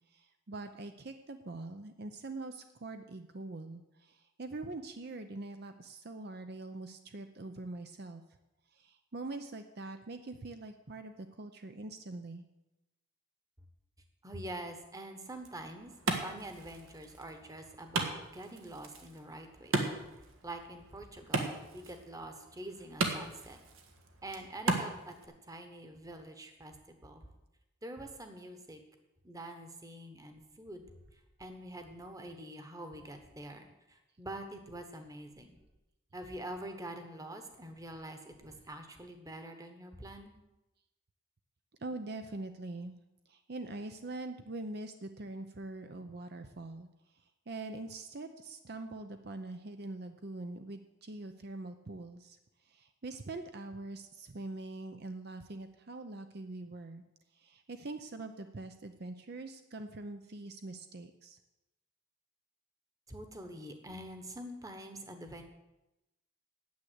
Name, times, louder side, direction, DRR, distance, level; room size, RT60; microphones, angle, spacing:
voice 1, 0.1-8.2 8.7-12.4 41.8-43.0 43.3-57.0 57.3-61.4, right 2 dB, 50° right, 8 dB, 0.7 m, -44 dB
voice 2, 14.2-19.8 20.1-23.6 24.2-27.3 27.8-28.8 29.2-30.9 31.1-35.6 36.1-40.3 63.1-65.4, right 1 dB, 15° right, 6 dB, 1.2 m, -46 dB
Wood, 15.3-25.3, right 3 dB, 80° right, 1.6 m, -38 dB
9.5 x 8.5 x 8.0 m, 0.97 s
head